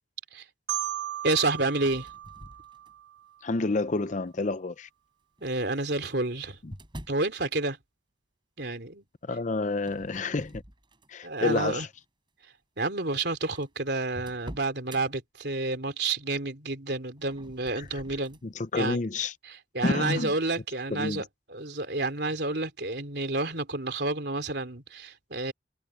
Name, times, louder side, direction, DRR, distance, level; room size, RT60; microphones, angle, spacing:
Marimba xylophone, 0.7-3.5, right 12 dB, 90° right, 1.0 m, -36 dB
voice 1, 1.2-2.1 5.4-6.6 7.1-7.8 8.6-9.0 11.2-11.9 12.8-18.4 18.8-19.0 19.5-25.5, right 2 dB, 65° right, 3.6 m, -30 dB
sound 1, 1.7-3.2 3.9-4.3 5.4-7.3 9.8-11.3 11.8-12.1 12.8-12.9 13.1-13.2 13.5-15.0 17.2-18.5, equal, 25° right, 6.9 m, -47 dB
voice 2, 3.4-4.9 6.6-6.7 9.2-10.6 11.1-11.9 17.8-18.0 18.4-19.3 19.8-20.3 20.9-21.2, left 3 dB, 45° left, 0.6 m, -29 dB
head